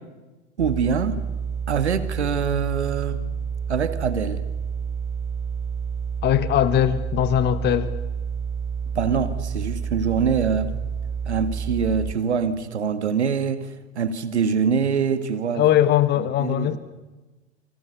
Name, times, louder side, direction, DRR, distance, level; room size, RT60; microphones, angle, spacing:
sound 1, 0.6-12.1, right 6 dB, 10° right, 4.7 m, -29 dB
voice 1, 0.6-1.2 1.7-3.2 3.7-4.4 8.9-10.7 11.3-15.7 16.2-16.8, right 6 dB, 75° right, 2.2 m, -24 dB
voice 2, 6.2-7.9 15.5-16.8, left 11 dB, 30° left, 1.3 m, -20 dB
30.0 x 26.0 x 6.9 m
figure-of-eight pair, 90°, 34 cm